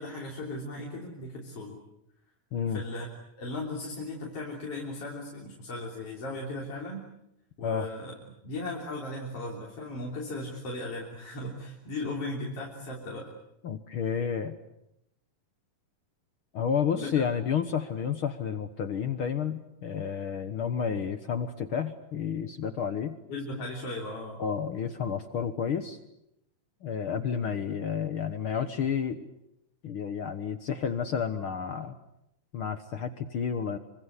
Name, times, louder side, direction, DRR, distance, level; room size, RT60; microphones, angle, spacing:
voice 1, 0.0-1.8 2.7-3.1 3.4-7.0 7.6-8.1 8.4-13.3 16.9-17.3 23.3-24.4, left 2 dB, 40° left, -2 dB, 4.3 m, -37 dB
voice 2, 2.5-2.8 7.6-7.9 13.6-14.5 16.5-23.2 24.4-26.0 26.8-29.3 29.8-31.9 32.5-33.8, left 7 dB, 70° left, 9 dB, 1.2 m, -31 dB
27.0 x 25.5 x 8.2 m, 0.83 s
omnidirectional pair, 4.2 m